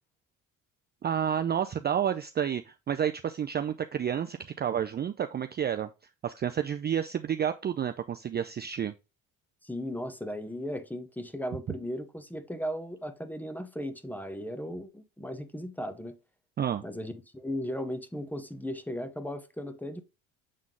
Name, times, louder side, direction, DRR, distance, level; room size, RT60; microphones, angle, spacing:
voice 1, 1.0-5.9 6.2-8.9 16.6-16.8, right 9 dB, 30° right, 0.4 m, -30 dB
voice 2, 9.6-16.1 16.8-20.0, equal, 5° left, 0.9 m, -36 dB
7.6 x 3.7 x 3.8 m
supercardioid pair, 85°, 36 cm